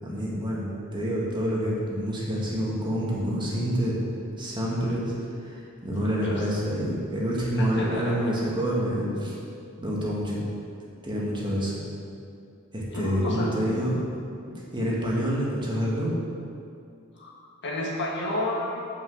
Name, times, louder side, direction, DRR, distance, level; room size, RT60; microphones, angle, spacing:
voice 1, 0.0-4.0 4.4-5.1 5.4-9.4 9.8-10.4 11.0-11.8 12.7-14.0 14.7-16.2, equal, 20° right, -5 dB, 1.8 m, -27 dB
voice 2, 6.0-6.4 7.6-8.3 12.9-13.6 17.2-17.3 17.6-18.8, left 1 dB, 55° left, -3 dB, 1.7 m, -31 dB
7.1 x 6.3 x 7.8 m, 2.4 s
head